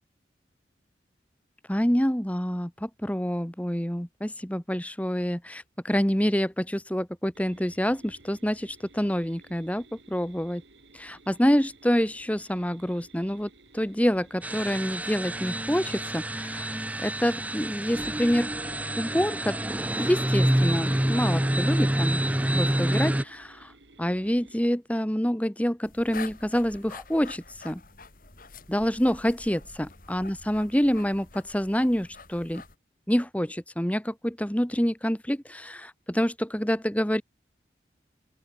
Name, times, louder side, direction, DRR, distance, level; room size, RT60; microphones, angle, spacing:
voice 1, 1.7-10.6 10.9-18.5 19.0-19.6 20.0-22.2 22.5-23.7 24.0-27.8 28.7-32.6 33.1-37.2, equal, 10° left, 1.6 m, -27 dB
sound 1, 7.3-24.6, right 2 dB, 80° right, 6.0 m, -56 dB
sound 2, 14.4-23.2, right 1 dB, 10° right, 0.7 m, -27 dB
sound 3, 25.8-32.8, left 4 dB, 50° left, 3.1 m, -46 dB
open air
head